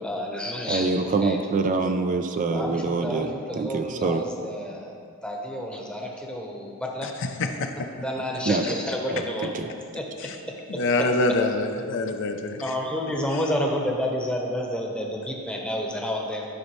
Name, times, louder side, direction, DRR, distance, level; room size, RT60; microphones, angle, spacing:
voice 1, 0.0-1.4 2.5-4.9 5.2-7.1 7.8-9.6 9.9-10.1 10.7-11.4 11.9-12.0 12.6-16.5, equal, 5° left, -1 dB, 0.9 m, -30 dB
voice 2, 0.7-3.3 3.6-4.2 8.5-8.6 9.6-9.7, right 3 dB, 35° right, 7 dB, 0.3 m, -25 dB
voice 3, 10.8-12.6, left 2 dB, 60° left, 5 dB, 0.5 m, -24 dB
11.5 x 5.3 x 3.1 m, 2.3 s
head